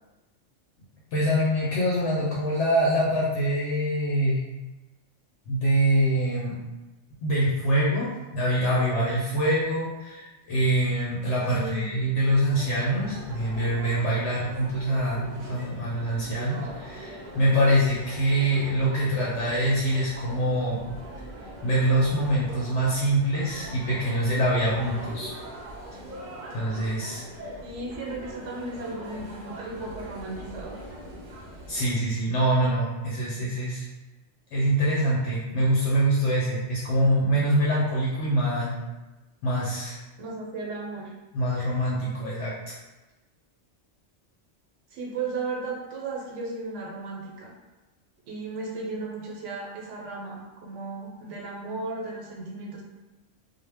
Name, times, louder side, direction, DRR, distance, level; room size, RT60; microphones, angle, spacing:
voice 1, 1.1-4.4 5.5-6.6 7.2-20.9 21.6-25.3 26.5-27.2 31.7-33.9 34.5-38.7 39.4-40.0 41.3-42.7, right 1 dB, 75° left, -6 dB, 0.9 m, -24 dB
voice 2, 11.5-12.0 27.6-30.8 40.2-41.1 44.9-47.5 48.3-52.8, right 3 dB, 80° right, -2 dB, 0.9 m, -35 dB
sound 1, 12.5-32.0, right 1 dB, 55° right, 0.6 m, -42 dB
2.1 x 2.1 x 3.3 m, 1.1 s
omnidirectional pair, 1.2 m